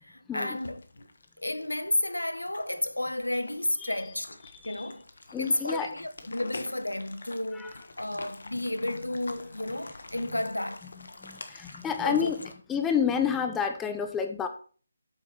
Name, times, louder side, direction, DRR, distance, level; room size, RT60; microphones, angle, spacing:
voice 1, 0.0-0.8 1.4-4.4 4.6-5.1 5.4-10.9 12.0-12.3, left 1 dB, 85° left, 0.8 m, -32 dB
sound 1, 0.5-12.5, left 2 dB, 60° left, 1.3 m, -46 dB
voice 2, 5.3-5.9 7.5-7.7 11.2-12.4 12.7-14.5, left 7 dB, 10° left, 0.7 m, -29 dB
8.6 x 6.4 x 4.5 m
figure-of-eight pair, 150°, 0 cm